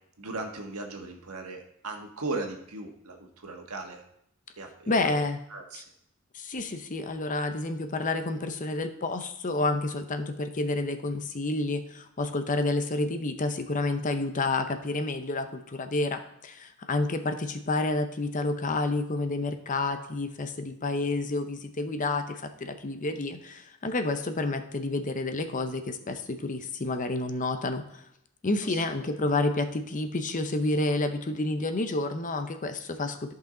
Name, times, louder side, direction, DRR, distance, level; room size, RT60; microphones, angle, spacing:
voice 1, 0.2-4.1 4.6-5.2 5.5-5.8 28.6-29.0, right 3 dB, 90° right, 3 dB, 1.5 m, -38 dB
voice 2, 4.9-5.4 6.3-28.0 28.4-33.3, left 2 dB, 35° left, 8 dB, 0.7 m, -29 dB
13.5 x 5.7 x 3.9 m, 0.75 s
head